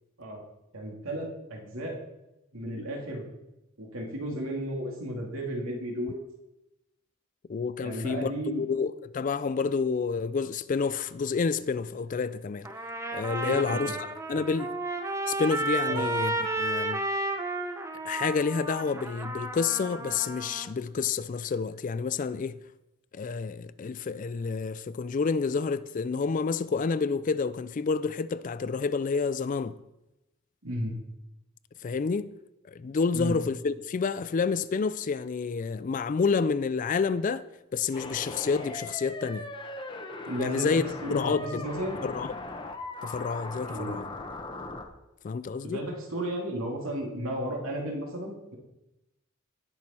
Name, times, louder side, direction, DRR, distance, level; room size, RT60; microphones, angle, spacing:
voice 1, 0.7-1.9 2.5-3.2 3.8-6.2 7.8-8.7 13.4-14.0 15.9-16.0 30.6-31.0 33.1-33.4 40.3-42.0 43.7-44.0 45.6-48.6, right 1 dB, 75° right, 2.5 m, -34 dB
voice 2, 7.5-12.7 13.1-14.8 15.3-17.0 18.0-22.6 23.1-29.8 31.8-32.3 32.7-37.4 37.7-39.5 40.4-40.8 41.1-41.7 42.0-42.3 43.0-44.1 45.2-45.8, left 5 dB, 40° left, 0.3 m, -29 dB
Trumpet, 12.6-20.7, right 2 dB, 15° right, 0.7 m, -32 dB
sound 1, 37.9-44.9, left 2 dB, 20° left, 0.9 m, -39 dB
18.0 x 6.3 x 4.3 m
head